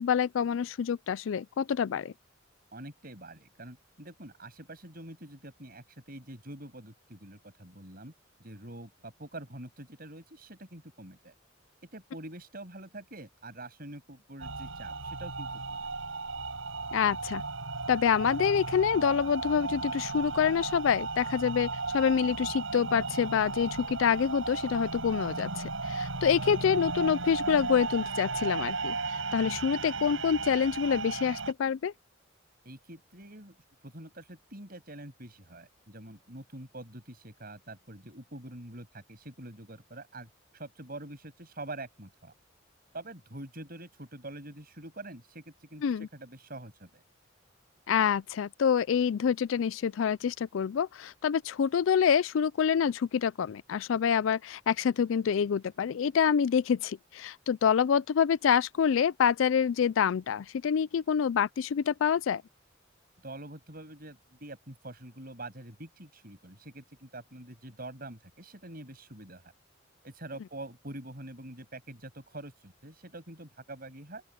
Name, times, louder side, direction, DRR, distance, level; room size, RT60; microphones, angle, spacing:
voice 1, 0.0-2.1 16.9-17.4 17.9-31.9 45.8-46.1 47.9-62.4, left 7 dB, 75° left, 0.4 m, -27 dB
voice 2, 2.7-8.1 8.4-11.3 11.9-15.9 32.6-33.6 33.8-42.3 42.9-47.0 63.2-69.5 70.0-74.2, right 1 dB, 50° right, 7.8 m, -45 dB
sound 1, 14.4-31.5, right 3 dB, 80° right, 5.9 m, -35 dB
open air
head